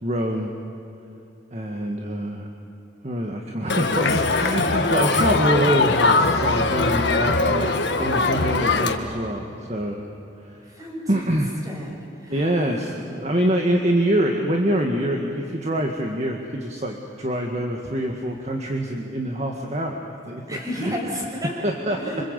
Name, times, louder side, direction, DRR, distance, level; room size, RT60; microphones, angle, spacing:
voice 1, 0.0-0.5 1.5-2.5 3.0-10.0 10.4-10.7 11.1-11.5 12.3-20.4 20.7-20.9 21.4-22.0, right 1 dB, 40° right, 2 dB, 1.8 m, -25 dB
Crowd, 3.7-8.9, left 3 dB, 70° left, 1.6 m, -21 dB
voice 2, 10.7-11.4 11.6-11.9 12.2-12.5 20.5-21.6 21.9-22.2, equal, 20° right, -1 dB, 6.1 m, -32 dB
27.0 x 25.0 x 8.3 m, 2.9 s
head